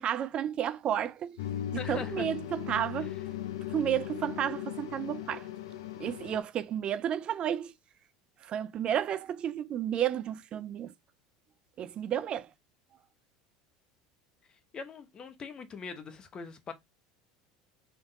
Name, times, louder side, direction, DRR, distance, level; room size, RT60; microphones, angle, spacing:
voice 1, 0.0-1.4 1.9-3.1 3.7-5.5 6.0-7.7 8.5-10.9 11.8-12.5, right 10 dB, 45° right, 0.4 m, -32 dB
sound 1, 1.4-6.4, left 12 dB, 85° left, 0.6 m, -38 dB
voice 2, 1.7-2.3 2.9-3.2 14.7-16.7, left 5 dB, 35° left, 1.0 m, -42 dB
3.6 x 3.5 x 4.0 m
hypercardioid pair, 90°, 2 cm